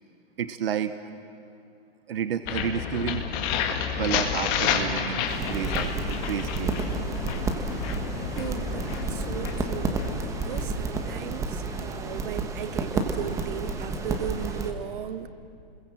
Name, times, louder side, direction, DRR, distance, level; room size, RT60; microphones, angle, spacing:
voice 1, 0.4-0.9 2.1-3.3 4.0-6.8, right 9 dB, 70° right, 1.1 m, -31 dB
sound 1, 2.4-12.3, left 7 dB, 25° left, 1.8 m, -31 dB
sound 2, 5.3-14.7, right 4 dB, 10° right, 1.2 m, -31 dB
voice 2, 7.8-15.3, right 9 dB, 55° right, 1.4 m, -37 dB
30.0 x 21.5 x 7.7 m
hypercardioid pair, 160°, 31 cm